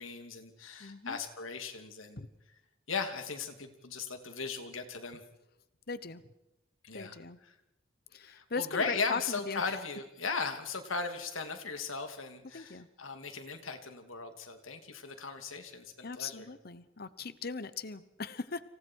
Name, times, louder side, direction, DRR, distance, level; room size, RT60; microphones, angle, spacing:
voice 1, 0.0-2.2 2.9-5.2 6.8-7.2 8.2-16.5, left 4 dB, 85° left, 6 dB, 2.9 m, -37 dB
voice 2, 0.8-1.2 2.2-2.3 5.9-6.2 6.9-7.4 8.1-9.8 12.5-12.9 16.0-18.6, left 4 dB, 50° left, 14 dB, 1.0 m, -39 dB
30.0 x 27.5 x 4.7 m, 0.91 s
head